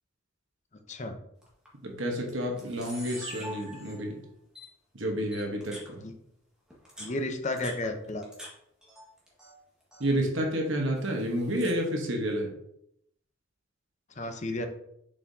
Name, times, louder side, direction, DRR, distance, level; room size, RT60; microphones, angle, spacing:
Camera, 1.4-1.7 2.3-2.4 2.6-4.1 4.6-4.7 5.3-5.9 6.7-8.5 8.8-9.5 9.8-10.2 11.0-11.8, equal, 5° right, 1.6 m, -45 dB
voice 1, 1.8-4.2 4.9-6.0 10.0-12.5, equal, 65° right, 1 dB, 1.2 m, -30 dB
voice 2, 7.0-8.2 14.2-14.7, left 2 dB, 35° left, 6 dB, 0.7 m, -32 dB
6.7 x 5.5 x 2.8 m, 0.75 s
head